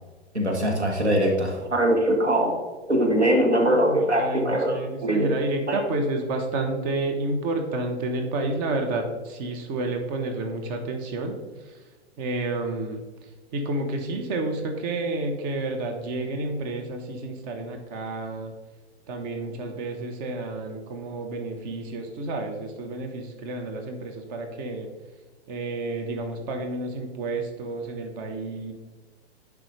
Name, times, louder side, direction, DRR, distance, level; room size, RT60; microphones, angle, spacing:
voice 1, 0.3-2.6 2.9-5.3 5.7-5.8, right 1 dB, 90° right, 1 dB, 1.5 m, -22 dB
voice 2, 3.7-11.4 11.6-11.8 12.2-18.5 19.1-24.9 25.5-28.7, right 2 dB, 40° right, 4 dB, 1.2 m, -30 dB
10.0 x 4.9 x 3.3 m, 1.3 s
figure-of-eight pair, 105°, 33 cm